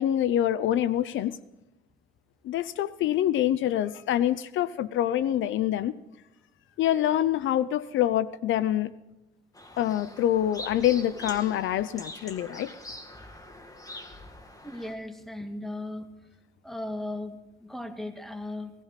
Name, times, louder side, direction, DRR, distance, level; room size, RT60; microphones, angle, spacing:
voice 1, 0.0-1.3 2.4-5.9 6.8-8.9 9.8-12.7, left 11 dB, 75° left, 17 dB, 0.6 m, -26 dB
sound 1, 9.5-14.9, left 1 dB, 20° left, 2.2 m, -43 dB
voice 2, 14.6-16.1 16.6-18.7, left 1 dB, ahead, 6 dB, 1.9 m, -36 dB
18.5 x 16.0 x 4.1 m, 0.96 s
cardioid pair, 90°, 20 cm